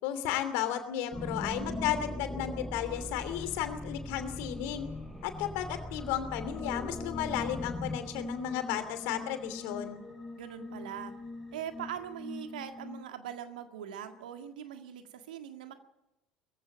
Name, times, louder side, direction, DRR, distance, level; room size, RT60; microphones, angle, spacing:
voice 1, 0.0-4.9 5.2-10.0, left 10 dB, 60° left, 9 dB, 2.9 m, -34 dB
sound 1, 1.1-13.0, left 2 dB, 5° left, 6.1 m, -41 dB
voice 2, 10.4-11.1 11.5-15.8, right 9 dB, 70° right, 7 dB, 1.9 m, -41 dB
21.0 x 15.5 x 9.0 m, 0.94 s
figure-of-eight pair, 65°, 5 cm